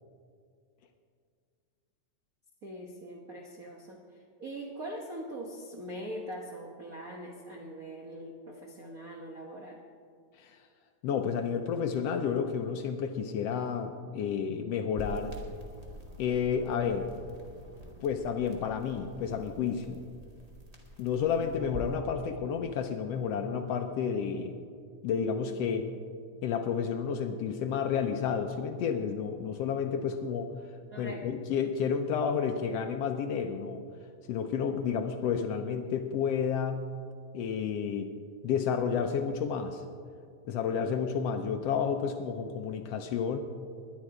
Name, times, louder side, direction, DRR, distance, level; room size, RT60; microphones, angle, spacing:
voice 1, 2.6-4.0 4.4-9.8 22.2-22.4 30.9-31.2, right 1 dB, 70° right, -1 dB, 0.8 m, -42 dB
voice 2, 11.0-15.3 16.2-17.1 18.0-20.0 21.0-24.5 25.0-25.9 26.4-30.5 31.0-33.8 34.3-36.8 37.3-38.1 38.4-39.8 40.5-43.4, left 7 dB, 75° left, 6 dB, 1.6 m, -31 dB
sound 1, 15.0-22.0, left 1 dB, 15° right, 1.5 m, -46 dB
20.5 x 10.5 x 4.8 m, 2.2 s
omnidirectional pair, 3.4 m